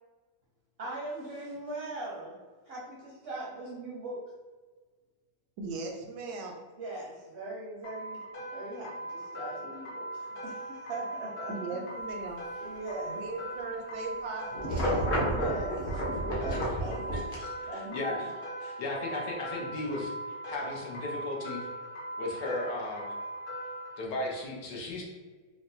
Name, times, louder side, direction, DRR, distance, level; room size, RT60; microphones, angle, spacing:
voice 1, 0.8-2.4 2.6-4.2 6.8-8.2 8.5-11.8 12.6-13.2 15.3-17.2 17.7-18.2, right 2 dB, 60° right, -5 dB, 0.6 m, -40 dB
voice 2, 5.6-6.6 11.5-12.4 13.0-15.2, right 3 dB, 85° right, 2 dB, 1.3 m, -39 dB
sound 1, 7.8-24.0, right 1 dB, 65° left, 1.1 m, -40 dB
sound 2, 14.5-17.3, equal, 45° left, 0.6 m, -30 dB
voice 3, 17.1-18.3 18.6-21.7 22.2-23.1 24.0-25.0, left 2 dB, 85° left, -2 dB, 1.5 m, -36 dB
4.5 x 2.1 x 2.7 m, 1.4 s
omnidirectional pair, 1.9 m